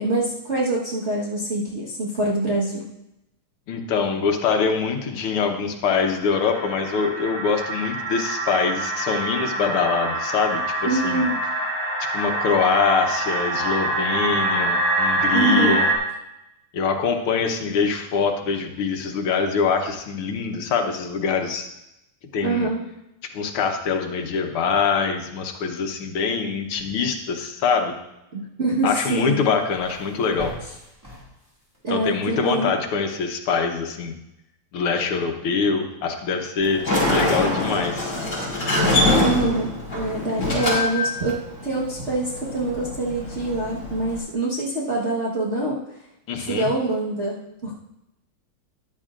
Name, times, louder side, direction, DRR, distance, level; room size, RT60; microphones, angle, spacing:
voice 1, 0.0-2.9 10.8-11.4 15.3-15.8 22.4-22.8 28.3-29.4 31.8-32.7 39.2-45.8 46.4-47.8, right 2 dB, 35° right, -5 dB, 1.4 m, -25 dB
voice 2, 3.7-11.2 12.1-15.9 16.7-21.7 22.3-22.7 23.3-27.9 28.8-30.5 31.9-34.1 34.7-38.1 46.3-46.7, left 5 dB, 80° left, 4 dB, 1.9 m, -24 dB
sound 1, 5.9-16.0, right 2 dB, 60° right, 3.6 m, -25 dB
sound 2, 29.1-31.8, equal, 10° right, 2.0 m, -41 dB
Sliding door, 36.6-44.2, left 2 dB, 50° left, 4.8 m, -24 dB
13.5 x 11.0 x 2.5 m, 0.87 s
omnidirectional pair, 2.4 m